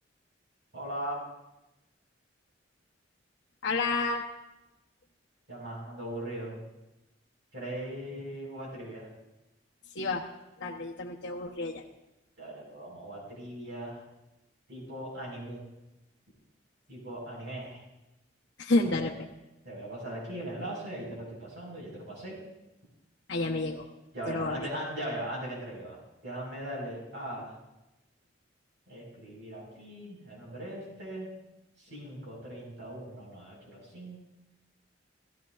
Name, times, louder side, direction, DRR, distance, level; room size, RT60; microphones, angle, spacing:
voice 1, 0.7-1.2 5.5-6.6 7.5-9.1 12.4-14.0 14.7-15.6 16.9-17.8 18.8-19.0 19.6-22.4 24.1-26.0 26.2-27.6 28.9-31.3 31.8-34.2, right 1 dB, 75° right, -4 dB, 4.9 m, -39 dB
voice 2, 3.6-4.2 9.9-10.2 10.6-11.8 18.6-19.1 23.3-23.9 24.3-24.7, left 2 dB, 75° left, -3 dB, 0.9 m, -29 dB
16.5 x 15.0 x 2.5 m, 0.97 s
head